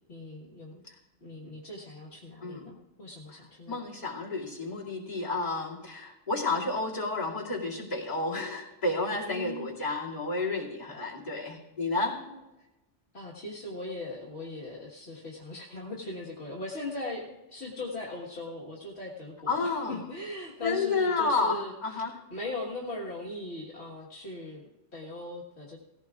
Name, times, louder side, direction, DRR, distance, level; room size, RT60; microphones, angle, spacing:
voice 1, 0.1-0.8 1.2-3.8 9.1-9.7 12.2-12.4 13.1-22.0 22.3-25.8, left 2 dB, 60° left, -4 dB, 1.8 m, -39 dB
voice 2, 2.4-2.7 3.7-12.2 19.5-20.0 20.6-22.1, left 3 dB, 35° left, -5 dB, 2.6 m, -31 dB
18.5 x 15.5 x 2.4 m, 1.0 s
omnidirectional pair, 1.2 m